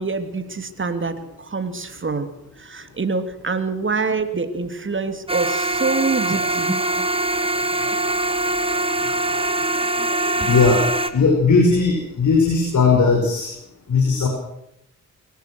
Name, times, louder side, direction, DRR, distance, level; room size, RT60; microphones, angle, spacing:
voice 1, 0.0-2.3 2.6-6.7, right 4 dB, 40° right, 9 dB, 3.1 m, -25 dB
sound 1, 5.3-11.1, right 2 dB, 15° right, 2.4 m, -22 dB
voice 2, 10.5-10.8 11.1-13.5 13.9-14.3, left 4 dB, 65° left, 2 dB, 5.8 m, -17 dB
23.0 x 18.0 x 6.4 m, 0.78 s
cardioid pair, 60°, 32 cm